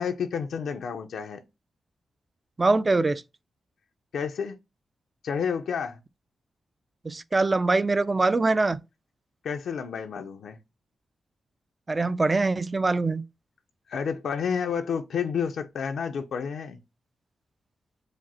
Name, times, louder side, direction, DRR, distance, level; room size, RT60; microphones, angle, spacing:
voice 1, 0.0-1.4 4.1-4.6 5.2-6.0 9.4-10.6 13.9-16.8, left 6 dB, 85° left, 0.5 m, -30 dB
voice 2, 2.6-3.2 7.0-8.8 11.9-13.2, right 3 dB, 30° right, 0.3 m, -23 dB
5.0 x 2.0 x 4.1 m
cardioid pair, 90°, 0 cm